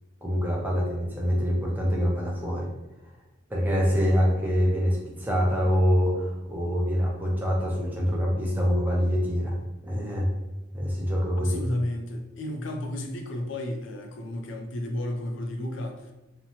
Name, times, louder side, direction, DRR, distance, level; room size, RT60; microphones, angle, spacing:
voice 1, 0.2-2.7 3.5-9.5 9.8-10.3 10.7-11.6, equal, 10° right, -3 dB, 0.5 m, -25 dB
voice 2, 11.4-16.1, left 1 dB, 70° left, 4 dB, 0.4 m, -32 dB
2.8 x 2.1 x 2.7 m, 1.1 s
head